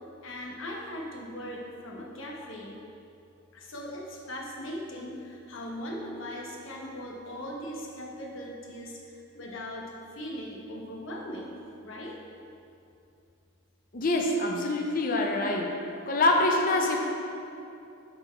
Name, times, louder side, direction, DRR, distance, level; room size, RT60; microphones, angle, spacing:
voice 1, 0.2-2.8 3.5-12.2, equal, 65° left, -1 dB, 0.9 m, -39 dB
voice 2, 13.9-15.7 16.1-17.0, left 2 dB, 40° left, 1 dB, 0.6 m, -25 dB
6.3 x 4.3 x 4.4 m, 2.6 s
head